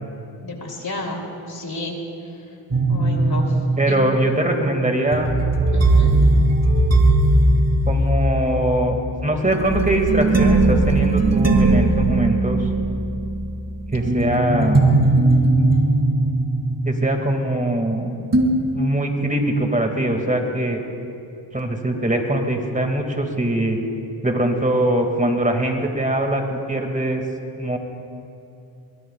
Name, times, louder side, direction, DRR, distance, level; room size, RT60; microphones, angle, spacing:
voice 1, 0.4-1.2 1.5-2.0 2.9-3.5 3.9-4.0 5.7-6.1, left 2 dB, 45° left, 1 dB, 3.3 m, -30 dB
sound 1, 2.7-17.9 18.3-18.5, right 2 dB, 30° right, 2.5 m, -19 dB
voice 2, 3.8-5.3 7.9-12.7 13.9-14.8 16.8-18.1 18.7-20.8 21.5-23.8 24.2-27.2 27.6-27.8, right 1 dB, 15° right, 3 dB, 2.3 m, -22 dB
23.0 x 21.5 x 2.5 m, 2.7 s
supercardioid pair, 55°, 48 cm